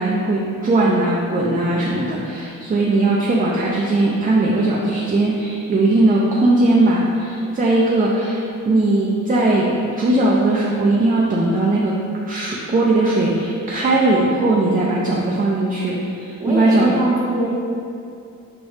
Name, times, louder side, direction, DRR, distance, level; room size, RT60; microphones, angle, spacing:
voice 1, 0.0-12.0 12.3-16.9, right 2 dB, 25° right, -4 dB, 0.3 m, -19 dB
voice 2, 16.4-17.5, right 2 dB, 10° right, -7 dB, 0.9 m, -21 dB
5.8 x 3.3 x 2.6 m, 2.6 s
wide cardioid pair, 160°, 32 cm